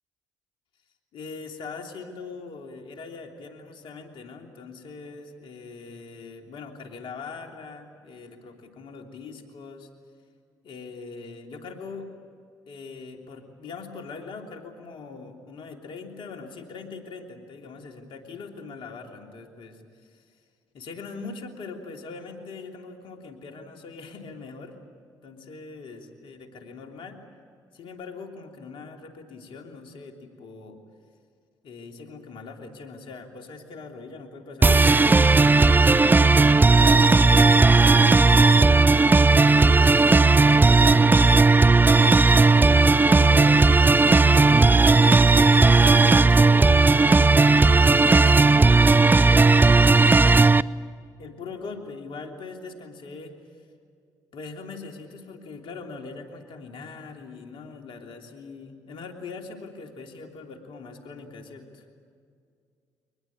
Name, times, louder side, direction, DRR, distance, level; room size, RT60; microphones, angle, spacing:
voice 1, 1.1-9.9 10.6-12.1 12.7-20.2 20.7-24.8 25.2-27.2 27.7-30.8 31.6-40.1 40.4-41.3 42.2-50.4 51.2-53.4 54.3-61.8, left 4 dB, 65° left, 3 dB, 3.2 m, -41 dB
sound 1, 34.6-50.6, right 3 dB, 20° right, 0.5 m, -16 dB
24.0 x 20.5 x 8.7 m, 2.2 s
hypercardioid pair, 55°, 9 cm